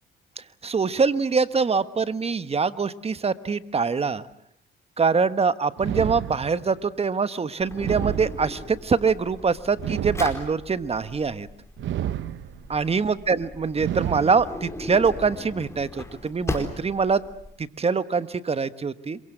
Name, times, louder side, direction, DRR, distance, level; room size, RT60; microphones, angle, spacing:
voice 1, 0.4-4.2 5.0-11.5 12.7-17.2 17.6-19.2, right 5 dB, 30° right, 13 dB, 1.3 m, -24 dB
sound 1, 5.8-6.8 7.8-8.8 9.8-10.8 11.8-12.8 13.8-14.8, right 11 dB, 70° right, 1.0 m, -31 dB
Drawer open or close, 7.6-17.5, left 2 dB, 15° left, 4.4 m, -38 dB
27.0 x 23.5 x 8.0 m, 0.72 s
cardioid pair, 90°, 20 cm